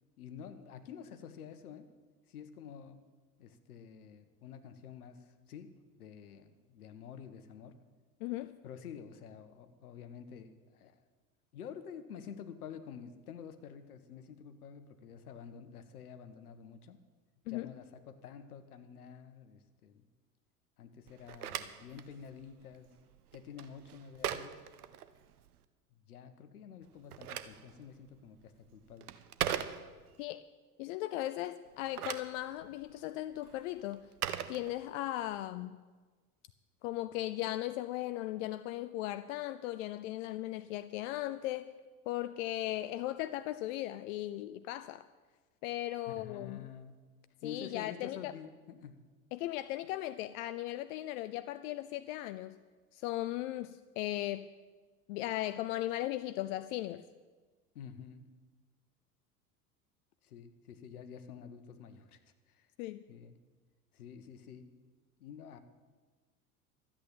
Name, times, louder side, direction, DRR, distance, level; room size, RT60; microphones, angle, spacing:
voice 1, 0.2-1.9 2.3-3.0 3.4-7.8 8.6-11.0 11.5-17.0 17.5-20.0 20.8-22.9 23.3-24.6 26.1-29.1 46.1-47.0 47.4-49.0 57.7-58.3 60.2-62.2 62.5-62.7 63.1-63.4 63.9-64.7 65.2-65.6, left 7 dB, 75° left, 10 dB, 1.3 m, -49 dB
voice 2, 8.2-8.6 17.5-17.7 30.2-30.5 30.8-34.1 34.5-35.8 36.8-41.7 42.1-45.0 45.6-46.6 47.4-48.3 49.3-52.6 52.9-54.5 55.1-57.0 62.8-63.0, left 15 dB, 60° left, 13 dB, 0.6 m, -37 dB
Telephone, 21.1-25.6 26.8-30.2 31.7-35.3, right 10 dB, 75° right, 0.9 m, -41 dB
13.0 x 8.8 x 8.7 m, 1.4 s
hypercardioid pair, 75°, 45 cm